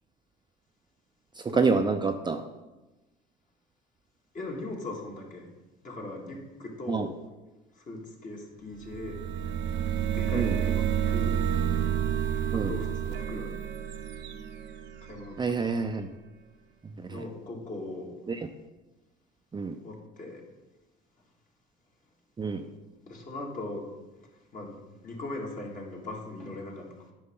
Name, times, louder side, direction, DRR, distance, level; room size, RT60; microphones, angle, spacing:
voice 1, 1.4-2.4 6.9-7.1 10.3-10.6 12.5-12.7 15.4-16.1 17.0-17.2 18.3-18.5 19.5-19.8 22.4-22.7, right 4 dB, 20° right, 6 dB, 0.6 m, -27 dB
voice 2, 4.3-5.5 5.8-7.1 7.9-9.2 10.1-11.4 12.5-13.6 15.0-15.4 17.1-18.1 19.8-20.4 23.0-23.9 24.5-24.8 25.0-26.9, left 2 dB, 40° left, -1 dB, 2.2 m, -39 dB
sound 1, 8.8-15.5, right 9 dB, 60° right, 0.8 m, -29 dB
9.5 x 5.3 x 3.8 m, 1.1 s
hypercardioid pair, 65°, 21 cm